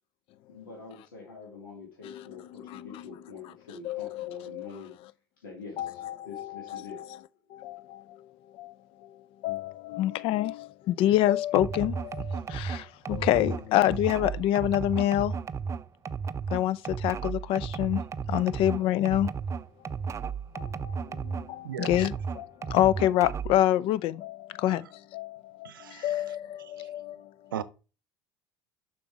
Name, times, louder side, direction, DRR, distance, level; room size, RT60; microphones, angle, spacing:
voice 1, 0.5-5.0 5.4-7.0, left 4 dB, 90° left, 2.6 m, -45 dB
voice 2, 2.0-3.1 3.8-4.7 5.8-7.1 7.5-8.3 8.5-8.7 9.0-12.2 12.5-12.8 13.1-15.4 16.5-18.0 18.3-19.3 20.5-27.5, left 13 dB, 55° left, 0.5 m, -27 dB
sound 1, 11.5-21.5 21.8-23.6, right 5 dB, 25° right, 0.5 m, -34 dB
voice 3, 25.6-26.1 26.8-26.9 27.5-27.6, right 10 dB, 90° right, 0.6 m, -36 dB
7.0 x 6.0 x 4.8 m
hypercardioid pair, 75°, 11 cm